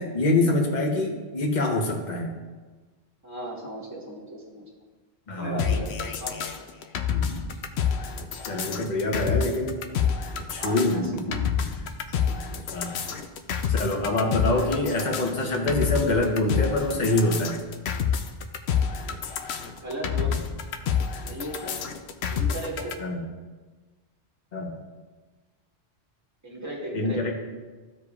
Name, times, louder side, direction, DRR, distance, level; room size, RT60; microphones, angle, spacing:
voice 1, 0.0-2.3 5.3-5.7 7.1-7.4 8.4-9.8 10.5-11.4 12.3-12.4 12.7-13.0 13.7-17.6 23.0-23.3 24.5-24.8 26.9-27.3, left 2 dB, 45° left, 1 dB, 1.1 m, -25 dB
voice 2, 3.2-4.6 5.4-6.7 10.5-11.5 19.8-20.3 21.3-21.8 22.3-22.9 26.4-27.3, right 1 dB, 15° right, -3 dB, 1.5 m, -36 dB
sound 1, 5.6-22.9, left 7 dB, 80° left, 0.9 m, -28 dB
14.5 x 5.0 x 2.4 m, 1.3 s
omnidirectional pair, 1.1 m